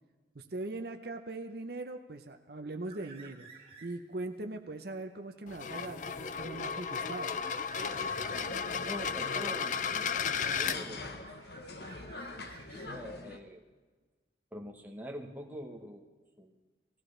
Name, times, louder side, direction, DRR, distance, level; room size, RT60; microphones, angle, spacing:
voice 1, 0.3-7.3, right 2 dB, 55° right, 6 dB, 0.7 m, -41 dB
sound 1, 2.9-4.2 4.6-8.9 9.9-10.7 10.9-13.4, right 5 dB, 30° right, 1.5 m, -54 dB
sound 2, 5.5-10.8, left 6 dB, 45° left, 0.4 m, -34 dB
sound 3, 7.8-13.4, left 2 dB, 60° left, 0.9 m, -44 dB
voice 2, 8.8-11.3 12.3-13.6 14.5-16.1 16.4-16.5, equal, 10° right, 1 dB, 1.1 m, -45 dB
19.0 x 15.5 x 3.3 m, 1.3 s
head